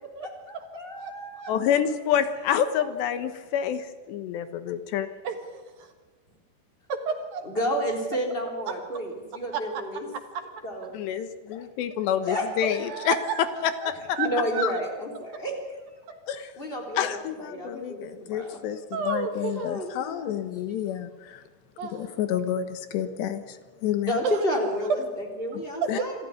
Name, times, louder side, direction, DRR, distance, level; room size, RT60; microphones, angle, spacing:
voice 1, 0.2-1.6 2.8-2.9 7.4-10.1 10.6-10.9 12.2-12.4 14.2-15.8 16.6-18.6 19.6-20.4 24.1-26.3, equal, 15° left, 2 dB, 3.4 m, -31 dB
voice 2, 1.5-5.1 10.9-13.2 13.6-14.2 14.6-14.7 16.3-16.5 17.0-21.4 21.9-24.2 25.9-26.0, left 9 dB, 80° left, 11 dB, 3.4 m, -28 dB
voice 3, 5.2-5.9 6.9-7.4 9.5-9.6 10.3-10.4 12.8-13.5 13.8-13.9 14.2-14.6 18.9-19.6 21.8-22.0 25.8-25.9, right 6 dB, 65° right, 7 dB, 3.0 m, -31 dB
26.5 x 14.0 x 9.9 m, 1.3 s
omnidirectional pair, 4.9 m